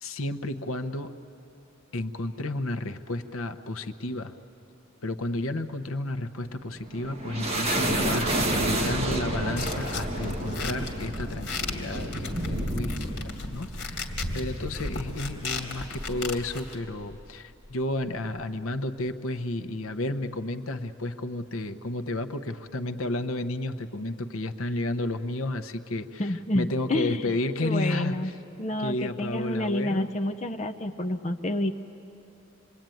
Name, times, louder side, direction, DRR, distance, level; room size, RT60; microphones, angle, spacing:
voice 1, 0.0-1.2 1.9-4.3 5.0-28.3 28.8-30.1, left 2 dB, 75° left, 8 dB, 0.9 m, -32 dB
sound 1, 6.5-17.3, right 1 dB, 30° right, 2.0 m, -31 dB
sound 2, 9.6-16.8, left 4 dB, 55° left, 2.5 m, -37 dB
voice 2, 26.2-28.3 28.6-31.7, left 1 dB, 30° left, 4 dB, 0.6 m, -29 dB
26.5 x 22.0 x 9.2 m, 2.9 s
head